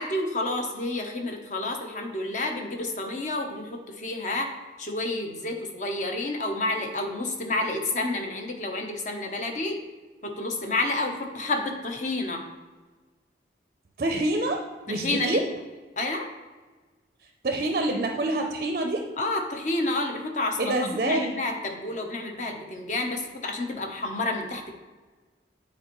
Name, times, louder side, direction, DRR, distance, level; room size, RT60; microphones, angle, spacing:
voice 1, 0.0-4.5 4.8-9.8 10.2-12.4 14.9-15.4 16.0-16.3 19.2-20.7 21.1-24.7, left 2 dB, 45° left, 3 dB, 0.7 m, -29 dB
voice 2, 14.0-15.5 17.4-19.0 20.6-21.4, right 2 dB, 45° right, 3 dB, 0.4 m, -26 dB
8.6 x 4.3 x 3.0 m, 1.3 s
head